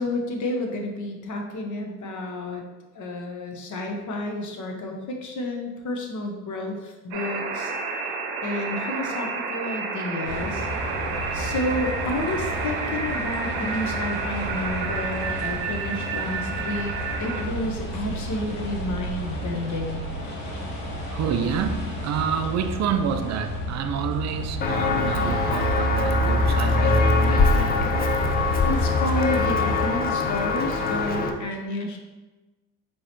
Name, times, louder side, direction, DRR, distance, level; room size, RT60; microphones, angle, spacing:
voice 1, 0.0-2.6 2.9-7.7 8.4-10.7 11.3-20.0 28.6-32.0, left 1 dB, 40° left, 3 dB, 0.9 m, -30 dB
sound 1, 7.1-17.4, right 4 dB, 80° right, 0.8 m, -30 dB
sound 2, 10.2-29.9, equal, 85° left, 1.2 m, -29 dB
voice 2, 21.1-27.9, right 7 dB, 40° right, 8 dB, 0.4 m, -28 dB
Walk footsteps, 24.6-31.3, left 4 dB, 25° left, 0.3 m, -24 dB
4.6 x 3.1 x 2.9 m, 1.2 s
supercardioid pair, 85°, 44 cm